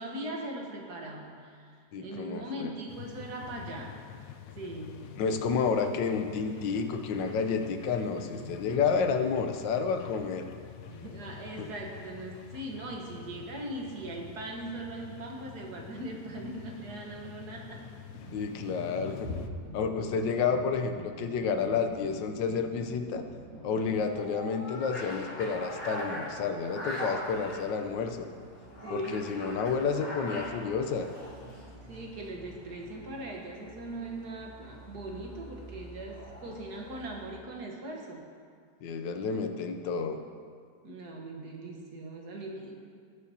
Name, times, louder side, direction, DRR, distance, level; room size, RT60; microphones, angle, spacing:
voice 1, 0.0-4.0 4.6-5.1 8.4-8.7 10.9-17.8 28.8-29.7 31.9-38.3 40.8-42.7, right 1 dB, 65° right, 0 dB, 1.7 m, -40 dB
voice 2, 1.9-2.7 5.2-10.5 11.6-11.7 18.3-19.3 19.7-23.2 23.6-28.3 28.9-31.1 38.8-40.2, left 5 dB, 85° left, 6 dB, 1.4 m, -30 dB
sound 1, 2.9-19.5, left 9 dB, 70° left, 0.8 m, -46 dB
sound 2, 18.1-24.0, left 1 dB, 80° right, 3.0 m, -44 dB
sound 3, 23.8-37.4, equal, 35° left, 2.3 m, -42 dB
19.0 x 6.5 x 2.8 m, 2.1 s
omnidirectional pair, 1.9 m